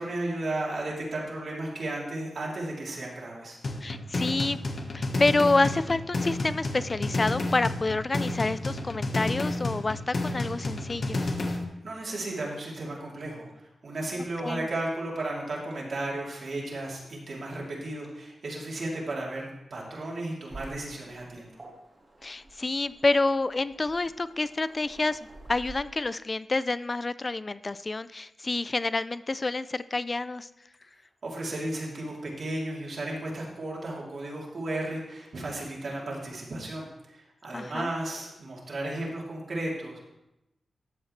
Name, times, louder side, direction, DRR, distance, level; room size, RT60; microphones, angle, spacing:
voice 1, 0.0-3.6 11.8-21.6 31.2-40.0, right 1 dB, 60° right, -4 dB, 3.1 m, -34 dB
sound 1, 3.6-11.6, left 2 dB, 50° left, 1.3 m, -31 dB
voice 2, 3.8-4.6 4.9-11.2 14.4-14.7 22.2-30.5 37.5-37.9, left 3 dB, 30° left, 16 dB, 0.4 m, -28 dB
Waves surf, 20.5-25.7, right 2 dB, 30° right, 2.5 m, -49 dB
13.0 x 7.9 x 3.3 m, 0.89 s
wide cardioid pair, 105°, 0 cm